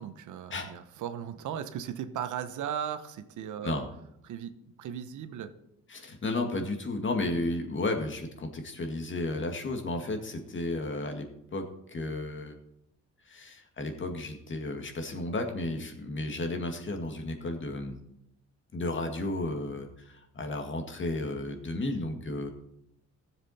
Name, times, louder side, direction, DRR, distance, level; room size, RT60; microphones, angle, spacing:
voice 1, 0.0-3.8 4.2-5.5 19.4-19.5, right 9 dB, 75° right, 10 dB, 1.0 m, -37 dB
voice 2, 5.9-12.5 13.3-18.0 18.7-22.5, left 2 dB, 40° left, 5 dB, 2.1 m, -33 dB
15.5 x 7.4 x 4.3 m, 0.80 s
cardioid pair, 90°, 30 cm